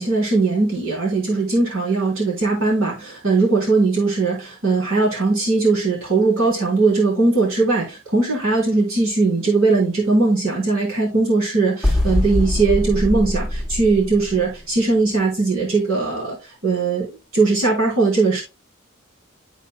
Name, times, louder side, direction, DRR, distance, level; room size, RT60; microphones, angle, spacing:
voice 1, 0.0-17.1 17.3-18.4, right 3 dB, 75° right, -4 dB, 3.3 m, -19 dB
sound 1, 11.8-14.6, left 1 dB, ahead, 1.0 m, -22 dB
12.0 x 4.4 x 2.2 m, 0.27 s
head